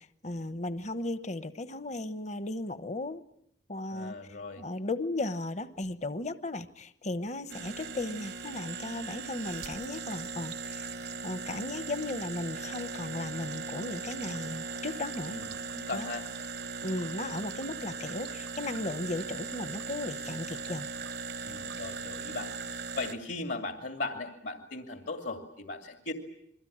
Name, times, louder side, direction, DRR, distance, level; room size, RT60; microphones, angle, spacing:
voice 1, 0.0-3.2 3.7-4.2 4.6-10.9 11.2-15.4 15.9-16.1 16.8-20.9, left 2 dB, 40° left, 12 dB, 1.0 m, -36 dB
voice 2, 3.9-4.6 15.3-15.5 15.7-16.3 21.4-22.5 23.0-26.1, left 3 dB, 75° left, 5 dB, 2.6 m, -37 dB
sound 1, 7.5-23.1, right 4 dB, 65° right, 1.0 m, -39 dB
29.0 x 22.5 x 8.7 m, 0.74 s
head